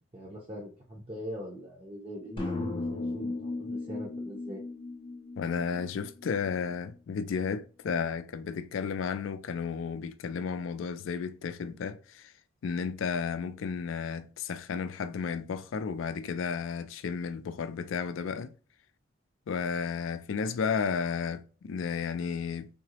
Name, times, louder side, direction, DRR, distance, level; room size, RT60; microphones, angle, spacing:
voice 1, 0.1-4.6, equal, 30° right, 0.6 m, -42 dB
sound 1, 2.4-6.5, left 2 dB, 25° left, 0.5 m, -36 dB
voice 2, 5.4-12.3 12.6-18.5 19.5-22.7, left 6 dB, 80° left, 0.4 m, -33 dB
3.6 x 2.0 x 2.7 m
head